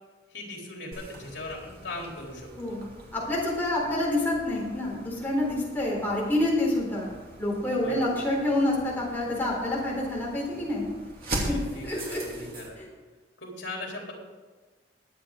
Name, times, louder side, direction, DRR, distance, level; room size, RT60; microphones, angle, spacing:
voice 1, 0.3-2.8 7.8-8.1 11.5-12.8 13.4-14.1, left 2 dB, 75° left, -1 dB, 3.6 m, -39 dB
sound 1, 0.9-12.7, right 1 dB, 55° right, 2.9 m, -41 dB
voice 2, 3.1-7.1 7.4-10.8 11.5-11.6 11.8-12.2 12.8-12.9, left 1 dB, 10° left, -4 dB, 3.8 m, -27 dB
22.5 x 8.3 x 3.8 m, 1.3 s
head